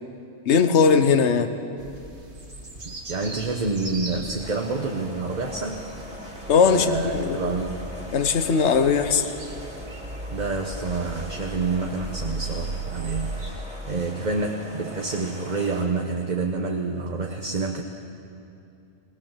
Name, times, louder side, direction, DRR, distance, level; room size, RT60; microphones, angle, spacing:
voice 1, 0.5-1.5 6.5-7.5 8.1-9.3, left 5 dB, 65° left, 10 dB, 1.3 m, -19 dB
sound 1, 1.8-13.5, right 2 dB, 60° right, 2.4 m, -37 dB
voice 2, 2.8-5.8 6.6-8.0 10.3-17.8, right 3 dB, 35° right, 2 dB, 1.1 m, -28 dB
sound 2, 4.4-15.9, equal, 5° right, 2.8 m, -41 dB
19.5 x 19.0 x 7.3 m, 2.6 s
omnidirectional pair, 1.3 m